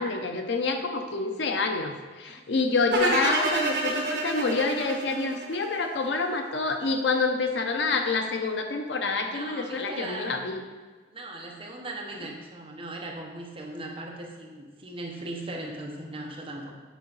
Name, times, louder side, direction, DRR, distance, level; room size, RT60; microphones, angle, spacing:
voice 1, 0.0-10.6, left 3 dB, 80° left, 5 dB, 0.7 m, -27 dB
voice 2, 2.3-2.6 9.3-10.5 11.1-16.7, right 2 dB, 30° right, 0 dB, 0.9 m, -38 dB
sound 1, 2.9-6.1, right 2 dB, 65° right, 1.3 m, -28 dB
8.2 x 4.7 x 4.0 m, 1.4 s
head